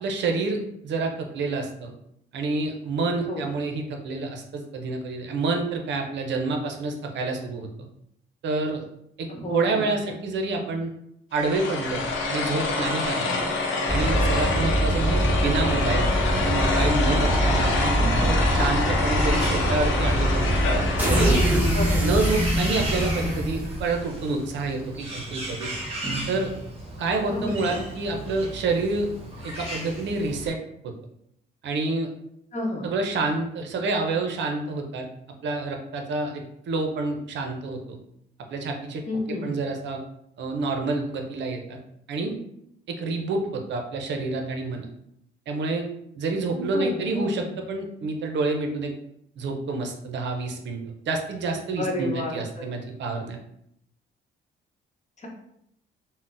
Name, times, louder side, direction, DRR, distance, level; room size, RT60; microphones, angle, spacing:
voice 1, 0.0-1.9 2.3-7.7 8.4-8.8 9.2-10.9 11.3-13.4 13.9-17.9 18.2-20.6 21.1-21.4 22.0-25.8 26.3-26.5 27.0-29.1 29.4-30.6 30.8-30.9 31.6-32.1 32.8-35.1 35.4-38.0 38.5-39.0 39.3-40.0 40.4-41.8 42.1-42.4 42.9-44.9 45.5-45.9 46.1-48.9 49.4-53.4, right 3 dB, 65° right, 3 dB, 0.5 m, -28 dB
voice 2, 9.3-10.2 13.2-13.5 21.7-22.1 27.3-27.8 32.5-32.9 39.1-39.5 46.5-47.5 51.8-52.4 55.2-55.3, left 1 dB, 35° left, -1 dB, 0.8 m, -31 dB
sound 1, 11.3-21.7, left 3 dB, 75° left, 0.7 m, -27 dB
sound 2, 13.8-24.1, equal, 10° right, 0.8 m, -24 dB
Bird, 17.5-30.5, right 1 dB, 30° right, 1.1 m, -35 dB
3.7 x 2.0 x 2.5 m, 0.76 s
cardioid pair, 90°, 20 cm